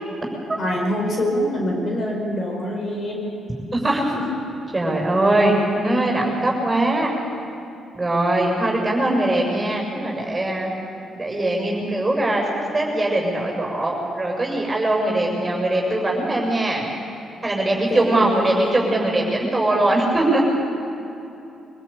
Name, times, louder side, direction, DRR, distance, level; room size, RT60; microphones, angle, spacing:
voice 1, 0.6-3.3 4.1-4.3 17.9-18.9, equal, 50° left, 0 dB, 5.2 m, -25 dB
voice 2, 3.7-4.0 4.7-7.1 7.9-10.7 11.1-12.4 12.7-16.8 17.4-20.4, right 1 dB, 15° right, -2 dB, 6.9 m, -21 dB
24.0 x 16.5 x 8.7 m, 2.8 s
cardioid pair, 90°, 0 cm